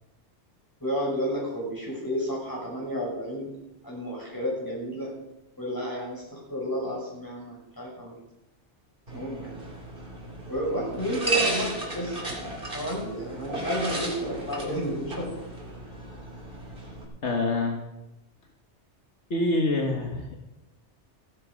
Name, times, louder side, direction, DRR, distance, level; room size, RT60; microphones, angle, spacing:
voice 1, 0.8-3.6 3.8-5.2 5.6-8.2 9.1-9.6 10.5-12.2 12.7-15.4, equal, 15° left, -4 dB, 6.1 m, -31 dB
sound 1, 9.1-17.0, right 2 dB, 45° right, 3.0 m, -34 dB
voice 2, 17.2-17.8 19.3-20.4, left 2 dB, 70° left, 2 dB, 1.8 m, -26 dB
15.5 x 11.0 x 5.2 m, 0.91 s
omnidirectional pair, 1.2 m